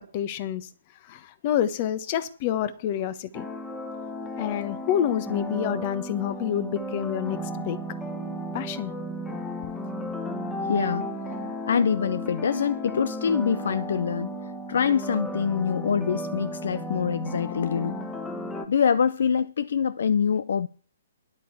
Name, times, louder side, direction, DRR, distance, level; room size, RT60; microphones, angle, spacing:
voice 1, 0.1-0.7 1.1-3.5 4.3-7.8 8.5-8.9 9.6-9.7, left 10 dB, 40° left, 1.2 m, -28 dB
sound 1, 3.3-18.7, equal, 10° left, 1.5 m, -34 dB
voice 2, 10.6-11.1 11.7-14.4 14.7-18.0 18.7-20.7, left 7 dB, 60° left, 0.5 m, -25 dB
10.5 x 9.1 x 7.2 m
figure-of-eight pair, 130°, 0 cm